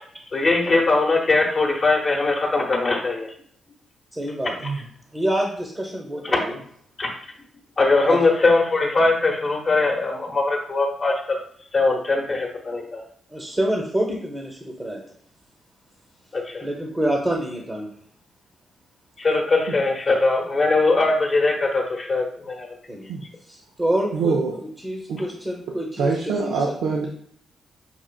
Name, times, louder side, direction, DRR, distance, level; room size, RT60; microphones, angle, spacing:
voice 1, 0.3-3.3 6.2-6.4 7.0-7.1 7.8-11.4 11.7-13.0 16.3-16.7 19.2-22.7, left 3 dB, 45° left, 0 dB, 0.9 m, -21 dB
voice 2, 4.1-4.5 5.1-6.6 8.0-8.2 13.3-15.0 16.6-17.9 22.9-23.1 23.5-26.5, right 1 dB, 20° right, -2 dB, 0.9 m, -27 dB
voice 3, 24.1-24.5 25.1-25.2 26.0-27.1, right 4 dB, 85° right, 0 dB, 0.4 m, -24 dB
5.7 x 2.4 x 2.3 m, 0.64 s
supercardioid pair, 55°, 0 cm